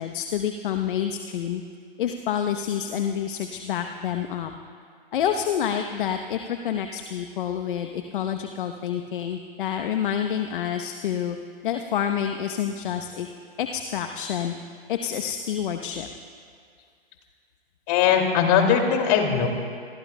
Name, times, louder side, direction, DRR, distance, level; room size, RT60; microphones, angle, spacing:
voice 1, 0.0-1.6 2.0-4.5 5.1-11.4 11.6-13.3 13.6-16.1, left 9 dB, 60° left, 6 dB, 1.0 m, -28 dB
voice 2, 17.9-19.5, left 7 dB, 40° left, 3 dB, 2.5 m, -20 dB
28.5 x 21.0 x 2.3 m, 2.2 s
hypercardioid pair, 120°, 30 cm